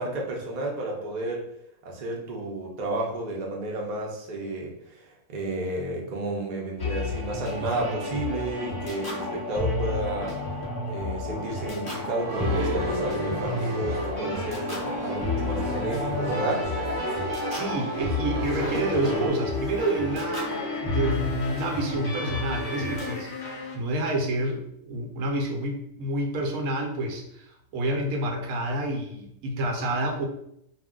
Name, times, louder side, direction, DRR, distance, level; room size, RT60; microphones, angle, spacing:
voice 1, 0.0-1.4 1.8-10.3 10.8-16.7, right 2 dB, 50° right, -1 dB, 0.5 m, -32 dB
sound 1, 6.8-23.1, left 2 dB, 15° left, 0.9 m, -31 dB
sound 2, 12.2-19.3, right 2 dB, 65° right, 0.9 m, -33 dB
voice 2, 17.5-23.3 23.7-30.3, right 1 dB, 90° right, 2 dB, 1.1 m, -29 dB
sound 3, 18.4-23.8, left 6 dB, 65° left, 0.6 m, -36 dB
2.4 x 2.1 x 3.6 m, 0.76 s
omnidirectional pair, 1.5 m